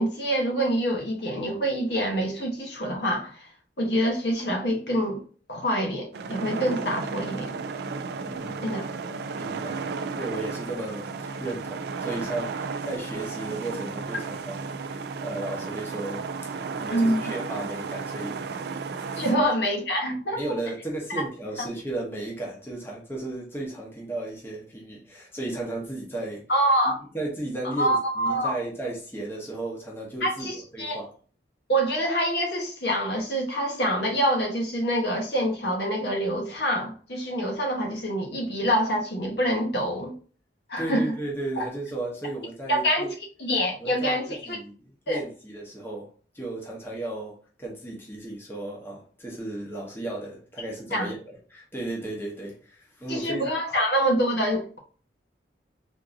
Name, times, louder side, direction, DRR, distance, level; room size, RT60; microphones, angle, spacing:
voice 1, 0.0-3.5 3.8-5.2 5.5-7.6 8.6-8.9 16.9-17.3 19.2-20.6 21.6-21.7 26.5-27.0 27.8-28.6 30.2-31.0 31.7-40.2 40.7-41.1 41.5-41.6 42.7-43.1 43.4-44.6 45.1-45.2 50.9-51.1 53.1-54.8, equal, 60° left, 1.0 m, -26 dB
sound 1, 6.1-19.3, right 4 dB, 60° right, 0.3 m, -34 dB
voice 2, 8.2-8.7 9.4-9.9 10.2-16.3 16.8-18.4 19.2-19.4 20.3-26.4 27.1-31.1 40.8-43.1 43.8-44.7 45.1-46.1 46.3-51.2 51.5-53.5, right 2 dB, 10° left, 0.8 m, -34 dB
3.6 x 2.6 x 2.5 m
head